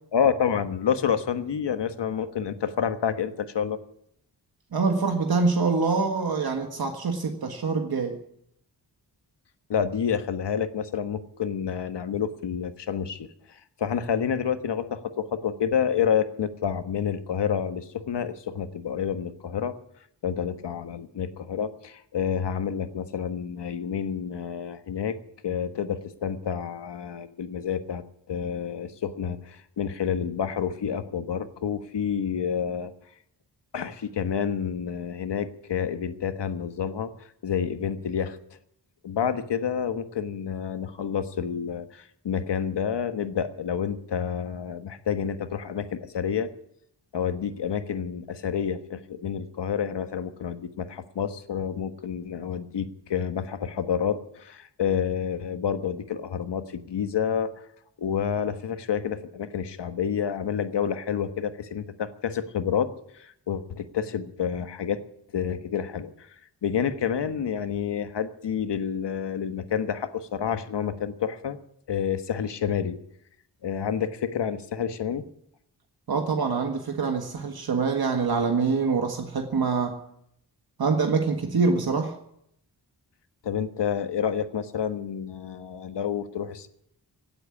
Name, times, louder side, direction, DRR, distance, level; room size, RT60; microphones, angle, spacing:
voice 1, 0.1-3.8 9.7-19.8 20.2-25.2 25.4-32.9 33.7-37.1 37.4-38.4 39.0-46.5 47.1-57.6 58.0-65.0 65.3-66.3 66.6-71.6 71.9-73.0 73.6-75.3 83.4-86.7, left 7 dB, 90° left, 9 dB, 1.4 m, -29 dB
voice 2, 4.7-8.2 76.1-80.0 80.8-82.2, right 4 dB, 60° right, 4 dB, 1.7 m, -25 dB
17.5 x 8.0 x 10.0 m, 0.72 s
wide cardioid pair, 125°, 41 cm